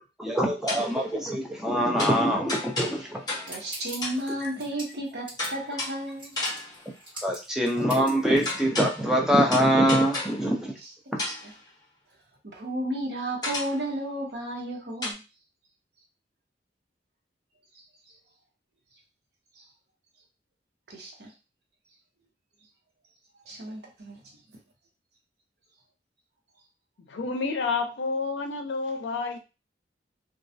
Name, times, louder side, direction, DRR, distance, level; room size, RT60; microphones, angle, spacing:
voice 1, 0.2-3.2 4.4-4.5 7.2-10.7, equal, 5° right, 0.4 m, -24 dB
sound 1, 0.7-1.1 2.0-3.7 4.0-4.3 5.4-6.1 6.4-6.9 8.5-9.2 9.5-10.5 11.2-11.6 13.4-13.9 15.0-15.1, left 2 dB, 20° left, 0.9 m, -33 dB
sound 2, 3.5-8.6, right 1 dB, 30° right, 1.2 m, -42 dB
voice 2, 3.5-6.4 11.2-11.5 12.4-15.2 19.6-19.7 20.9-21.3 23.5-24.2, right 1 dB, 60° right, 0.7 m, -33 dB
voice 3, 27.0-29.4, left 4 dB, 80° left, 0.5 m, -29 dB
2.3 x 2.0 x 2.6 m
head